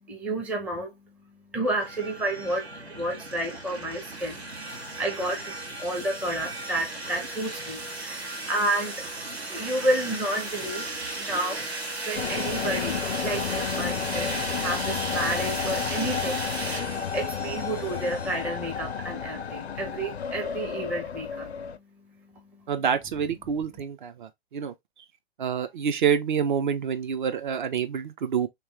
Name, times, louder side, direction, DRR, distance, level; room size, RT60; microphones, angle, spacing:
voice 1, 0.0-23.1 23.4-23.8, right 1 dB, 5° right, 0.5 m, -31 dB
sound 1, 1.6-18.4, right 2 dB, 85° right, 1.7 m, -36 dB
sound 2, 12.1-21.8, left 7 dB, 90° left, 0.5 m, -32 dB
voice 2, 22.7-24.1 24.5-24.7 25.4-28.5, right 7 dB, 50° right, 0.6 m, -27 dB
3.1 x 2.9 x 3.1 m
figure-of-eight pair, 125°, 31 cm